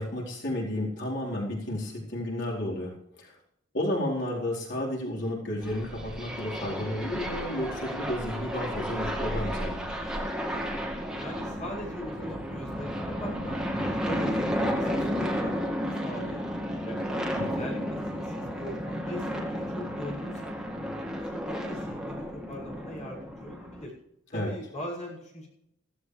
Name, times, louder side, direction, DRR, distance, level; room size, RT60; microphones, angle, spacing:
voice 1, 0.0-3.3 3.7-9.9 17.4-17.6 24.3-24.5, left 1 dB, 65° left, -4 dB, 4.5 m, -32 dB
sound 1, 5.6-23.8, equal, 5° right, 2.1 m, -32 dB
voice 2, 11.1-17.1 17.4-17.8 18.1-20.6 21.0-23.9 24.3-25.5, equal, 40° left, -2 dB, 6.5 m, -41 dB
16.0 x 14.5 x 3.4 m, 0.81 s
head